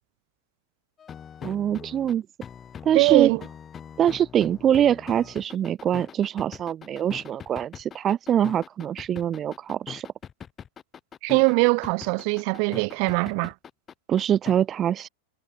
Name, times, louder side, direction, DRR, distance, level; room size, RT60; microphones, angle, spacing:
sound 1, 1.0-14.5, left 8 dB, 25° left, 3.9 m, -42 dB
voice 1, 1.4-2.2 2.8-3.3 4.0-10.1 14.1-15.1, right 10 dB, 30° right, 1.0 m, -24 dB
voice 2, 2.9-3.4 11.2-13.5, right 40 dB or more, 50° right, 1.3 m, -21 dB
hypercardioid pair, 100°, 0 cm